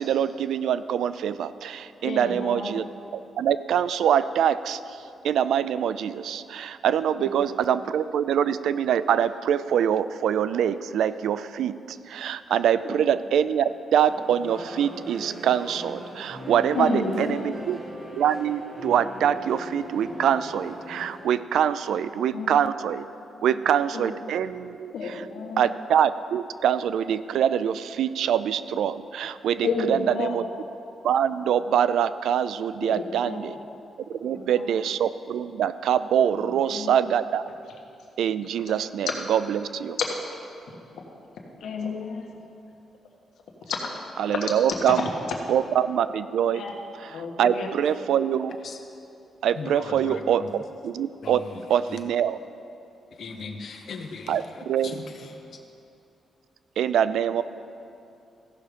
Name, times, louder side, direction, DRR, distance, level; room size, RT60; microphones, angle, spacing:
voice 1, 0.0-2.9 3.4-17.8 18.2-23.1 23.4-25.2 25.6-30.4 31.0-33.6 34.2-37.4 38.2-40.0 44.2-45.1 45.5-46.6 47.0-48.5 49.4-51.4 51.7-52.4 54.3-54.9 56.8-57.4, right 9 dB, 85° right, 14 dB, 0.3 m, -24 dB
voice 2, 2.0-2.8 7.1-7.5 12.8-13.1 16.7-17.6 22.3-22.5 23.9-24.1 24.9-25.6 29.6-30.5 32.8-33.5 34.1-34.7 36.3-36.4 36.6-37.0 38.6-38.7 41.0-41.1 41.6-42.4 43.6-44.0 44.3-44.4 44.9-45.0 46.5-46.7 47.1-47.7, left 4 dB, 80° left, 1 dB, 1.4 m, -31 dB
sound 1, 14.1-21.2, equal, 45° right, 1.9 m, -39 dB
voice 3, 49.5-50.5 51.2-52.0 53.1-55.6, left 4 dB, 55° left, 4 dB, 1.0 m, -39 dB
15.5 x 6.1 x 5.1 m, 2.7 s
cardioid pair, 135°, 0 cm